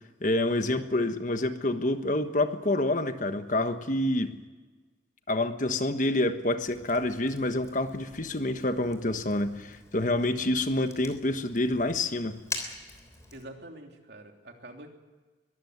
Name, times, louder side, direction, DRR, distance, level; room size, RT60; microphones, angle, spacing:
voice 1, 0.2-4.3 5.3-12.4, left 1 dB, 45° left, 8 dB, 1.4 m, -27 dB
Fire, 6.6-13.4, left 3 dB, 15° left, 3.3 m, -44 dB
voice 2, 13.3-14.9, right 1 dB, 65° right, 3 dB, 3.2 m, -46 dB
22.5 x 14.5 x 9.6 m, 1.3 s
head